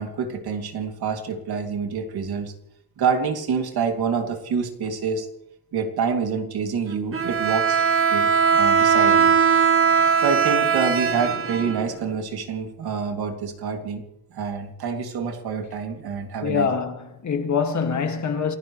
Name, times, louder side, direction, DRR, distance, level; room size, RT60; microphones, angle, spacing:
voice 1, 0.0-2.5 3.0-5.3 5.7-9.3 10.2-14.0 14.3-16.7, right 5 dB, 75° right, 2.7 m, -27 dB
Bowed string instrument, 7.1-12.2, right 6 dB, 35° right, 1.1 m, -19 dB
voice 2, 16.4-18.6, left 6 dB, 50° left, 2.1 m, -24 dB
28.5 x 15.5 x 3.2 m
wide cardioid pair, 150°, 38 cm